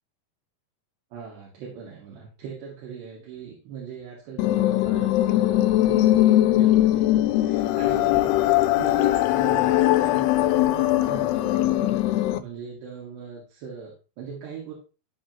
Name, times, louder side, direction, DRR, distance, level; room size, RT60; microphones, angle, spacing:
voice 1, 1.1-8.5 8.8-14.7, right 6 dB, 90° right, -5 dB, 4.5 m, -40 dB
sound 1, 4.4-12.4, left 14 dB, 85° left, 2.6 m, -20 dB
14.5 x 5.3 x 3.0 m, 0.31 s
omnidirectional pair, 4.7 m